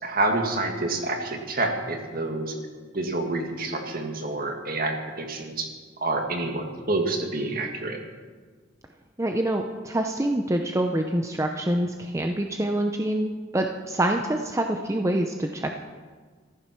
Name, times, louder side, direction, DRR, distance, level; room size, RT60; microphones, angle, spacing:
voice 1, 0.0-2.6 2.9-5.7 6.0-8.0, right 2 dB, 50° right, 3 dB, 2.0 m, -28 dB
voice 2, 9.2-15.8, right 1 dB, 15° right, 3 dB, 0.7 m, -26 dB
14.5 x 13.5 x 6.0 m, 1.5 s
head